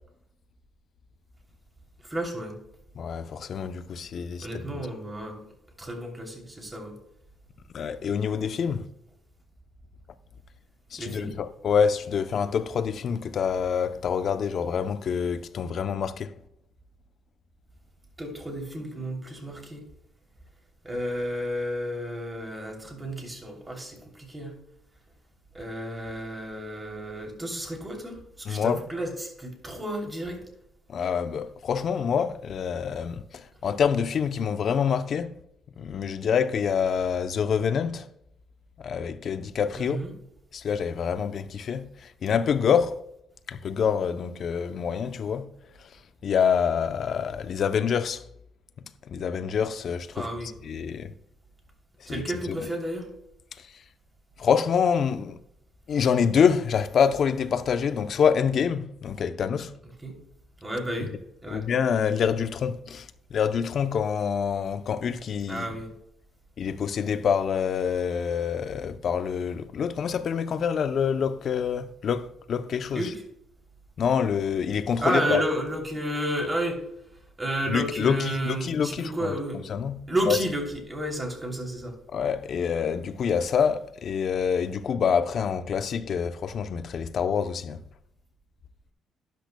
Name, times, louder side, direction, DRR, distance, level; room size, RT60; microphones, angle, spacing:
voice 1, 2.0-2.6 4.4-5.4 5.8-7.0 11.0-11.4 18.2-19.8 20.8-24.6 25.5-30.4 39.7-40.1 50.1-50.5 52.0-53.1 60.0-60.2 60.6-61.1 61.4-61.7 65.5-65.9 72.9-73.2 75.0-76.9 77.4-79.6 80.1-82.0, right 1 dB, 15° right, 3.0 m, -31 dB
voice 2, 3.0-4.5 4.7-4.9 7.7-8.9 10.9-16.3 28.5-28.8 30.9-35.4 35.8-38.1 38.8-40.0 40.5-43.0 43.5-45.5 45.8-45.9 46.2-48.2 49.1-50.3 50.6-51.1 52.0-52.2 52.5-52.6 53.6-53.7 54.4-55.4 55.9-59.7 61.5-65.7 66.6-73.1 74.0-75.4 77.7-79.3 79.7-80.0 80.3-80.4 82.1-87.8, left 7 dB, 60° left, 0.6 m, -26 dB
12.5 x 10.5 x 2.2 m
cardioid pair, 90°, 0 cm